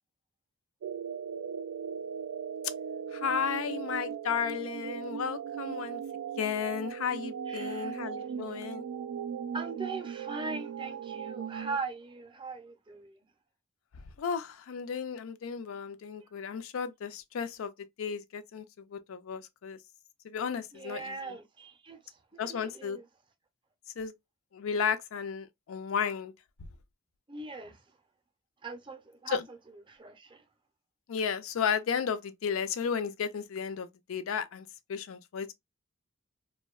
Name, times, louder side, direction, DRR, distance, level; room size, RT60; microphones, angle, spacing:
sound 1, 0.8-11.8, right 7 dB, 85° right, 0.3 m, -38 dB
voice 1, 3.1-6.0 6.4-8.8 14.2-17.7 18.0-19.8 20.2-21.4 22.4-23.0 24.0-24.1 24.5-26.3 29.3-29.4 31.1-35.5, left 7 dB, 80° left, 0.4 m, -34 dB
voice 2, 7.5-8.3 9.5-13.2 20.7-23.0 27.3-27.8 28.6-29.4 29.9-30.4, right 4 dB, 25° right, 0.5 m, -40 dB
2.6 x 2.1 x 2.2 m
head